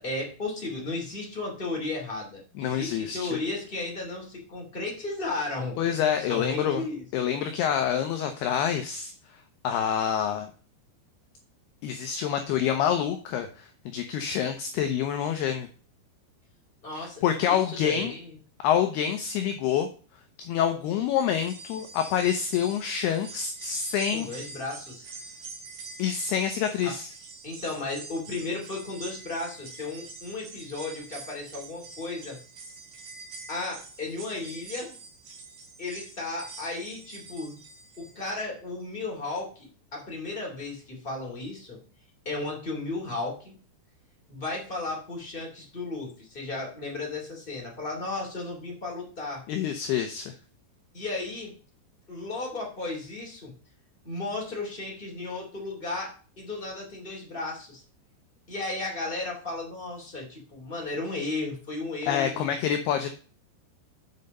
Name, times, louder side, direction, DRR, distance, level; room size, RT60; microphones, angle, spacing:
voice 1, 0.0-5.8 6.2-7.0 16.8-17.2 17.5-18.4 24.1-25.1 26.8-27.0 27.4-32.4 33.5-34.9 35.8-37.6 38.0-41.8 42.2-43.5 44.3-49.4 50.9-51.5 52.1-53.5 54.0-57.8 58.5-62.5, left 2 dB, 15° left, -1 dB, 1.8 m, -34 dB
voice 2, 2.6-3.4 5.8-6.9 7.1-9.1 9.6-10.5 11.8-15.7 17.0-18.1 18.6-19.9 20.4-24.3 26.0-27.1 49.5-50.3 62.1-63.1, left 9 dB, 80° left, 6 dB, 2.4 m, -27 dB
sound 1, 21.1-38.4 38.8-38.9 40.0-40.1, right 4 dB, 55° right, 3.4 m, -45 dB
7.8 x 5.6 x 5.4 m, 0.38 s
omnidirectional pair, 5.4 m